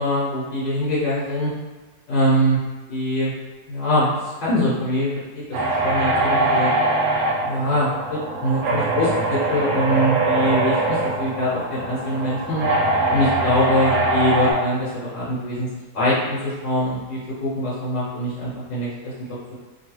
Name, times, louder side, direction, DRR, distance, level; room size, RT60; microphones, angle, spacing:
voice 1, 0.0-1.5 2.1-2.6 2.9-3.3 3.7-5.4 5.8-6.7 7.4-12.6 13.1-15.7 15.9-19.5, equal, 80° left, -10 dB, 1.6 m, -23 dB
sound 1, 5.5-14.5, right 2 dB, 80° right, 1.2 m, -22 dB
3.3 x 2.3 x 2.9 m, 1.2 s
omnidirectional pair, 1.9 m